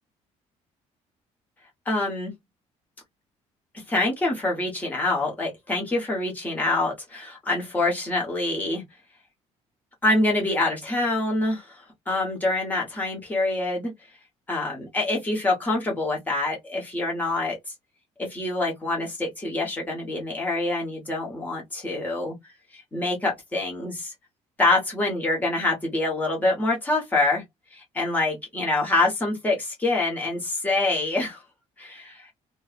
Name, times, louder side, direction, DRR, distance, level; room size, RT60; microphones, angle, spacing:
voice 1, 1.9-2.3 3.9-8.8 10.0-13.9 14.5-17.6 18.2-22.3 22.7-24.1 24.6-27.4 27.7-31.4 31.8-32.3, left 2 dB, 15° left, 1.1 m, -26 dB
2.6 x 2.3 x 2.4 m
cardioid pair, 175°, 13 cm